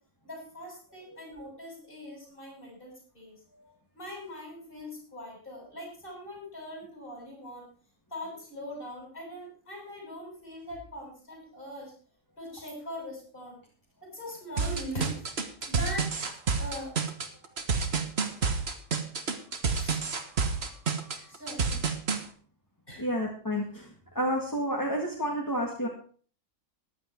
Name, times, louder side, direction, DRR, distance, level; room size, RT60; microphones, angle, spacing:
voice 1, 0.2-3.4 3.9-7.7 8.1-11.9 12.4-13.6 14.0-15.3 15.7-16.1 16.6-16.9 19.7-20.0 21.1-21.7 22.9-23.1, equal, 45° left, -1 dB, 7.9 m, -41 dB
sound 1, 14.6-22.2, right 5 dB, 55° right, 1.7 m, -29 dB
voice 2, 23.0-23.9 24.2-25.9, equal, 15° left, -1 dB, 2.0 m, -30 dB
14.5 x 10.5 x 4.6 m, 0.43 s
omnidirectional pair, 1.3 m